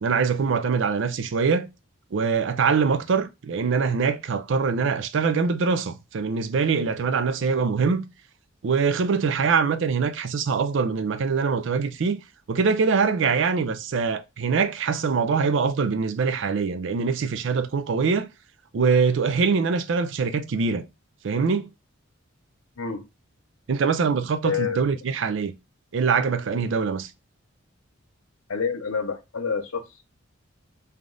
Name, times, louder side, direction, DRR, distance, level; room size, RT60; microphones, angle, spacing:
voice 1, 0.0-1.7 2.1-8.0 8.6-12.2 12.5-18.3 18.7-20.8 21.2-21.7 23.7-25.5 25.9-27.1, right 5 dB, 60° right, 0.4 m, -23 dB
voice 2, 24.4-24.8 28.5-30.0, left 6 dB, 90° left, 0.7 m, -28 dB
3.4 x 2.4 x 3.8 m
head